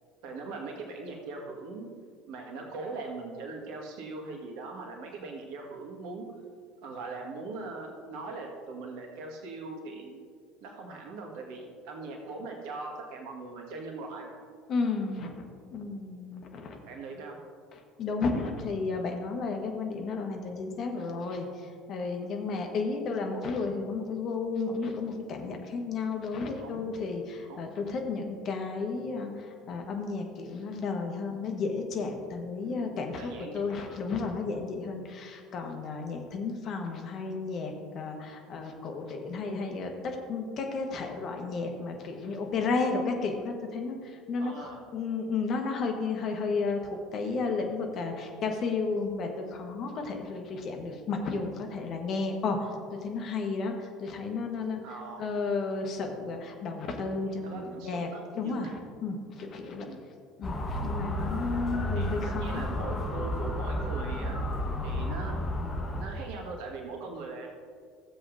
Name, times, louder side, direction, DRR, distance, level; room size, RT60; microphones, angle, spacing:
voice 1, 0.2-1.9 2.3-6.3 6.8-10.2 10.6-14.4 16.8-17.4 26.6-26.9 27.5-27.7 32.6-32.8 33.2-34.1 44.4-44.8 54.8-55.2 57.4-58.8 59.8-60.1 61.9-64.4 64.8-65.5 65.9-67.5, right 3 dB, 65° right, 1 dB, 1.7 m, -40 dB
voice 2, 14.7-15.3 15.7-16.8 18.0-21.5 21.9-54.8 55.2-58.1 58.4-59.9 60.4-63.0, left 4 dB, 45° left, 3 dB, 1.4 m, -33 dB
Motor vehicle (road) / Siren, 60.4-66.1, left 1 dB, 30° left, 1.4 m, -32 dB
15.0 x 7.7 x 2.7 m, 2.1 s
figure-of-eight pair, 65°, 0 cm